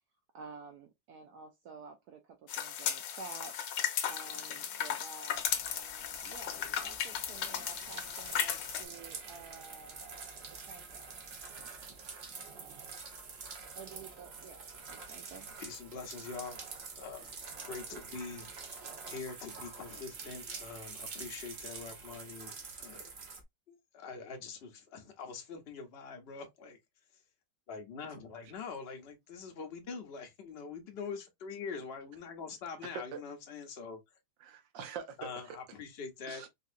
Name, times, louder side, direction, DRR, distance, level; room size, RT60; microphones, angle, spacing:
voice 1, 0.3-3.5 4.1-11.1 13.7-15.5, right 4 dB, 70° right, 1.0 m, -51 dB
sound 1, 2.5-8.8, left 9 dB, 80° left, 1.3 m, -36 dB
sound 2, 5.4-23.4, right 5 dB, 50° right, 0.7 m, -47 dB
voice 2, 11.6-12.0 32.9-33.2 34.4-35.6 36.3-36.5, right 7 dB, 85° right, 1.5 m, -44 dB
voice 3, 15.6-16.6 16.9-23.1 23.7-26.8 27.1-27.2 27.7-34.0 35.2-36.5, left 5 dB, 50° left, 0.8 m, -44 dB
4.0 x 2.5 x 2.5 m
omnidirectional pair, 1.9 m